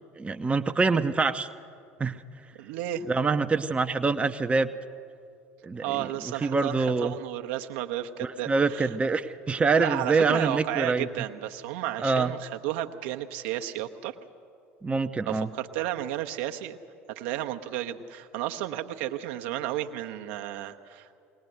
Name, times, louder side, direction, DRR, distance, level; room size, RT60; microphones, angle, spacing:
voice 1, 0.2-1.5 2.0-2.2 3.1-4.7 5.6-6.1 6.4-7.1 8.2-11.1 12.0-12.3 14.8-15.5, right 4 dB, 15° right, 8 dB, 0.7 m, -25 dB
voice 2, 2.5-3.0 5.8-9.0 9.8-14.2 15.3-16.8 17.1-21.1, right 13 dB, 60° right, 5 dB, 0.9 m, -33 dB
21.5 x 19.0 x 7.9 m, 2.4 s
figure-of-eight pair, 65°, 7 cm